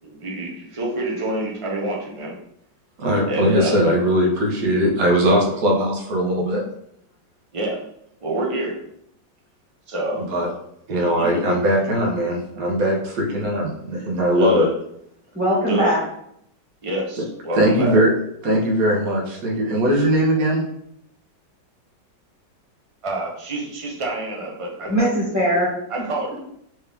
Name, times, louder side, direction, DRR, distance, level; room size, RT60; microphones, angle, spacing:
voice 1, 0.0-2.4 3.3-3.8 7.5-7.8 8.2-8.8 9.9-10.2 11.0-11.3 14.3-14.7 15.7-15.9 16.8-18.0 23.0-25.1 25.9-26.4, right 1 dB, 30° right, -2 dB, 0.6 m, -27 dB
voice 2, 3.0-6.6 10.2-10.5 10.9-14.7 17.5-18.1 18.4-20.6, equal, 55° right, -1 dB, 1.4 m, -20 dB
voice 3, 15.3-16.0 24.8-26.1, equal, 5° right, -9 dB, 1.7 m, -21 dB
4.6 x 3.1 x 3.4 m, 0.73 s
omnidirectional pair, 1.9 m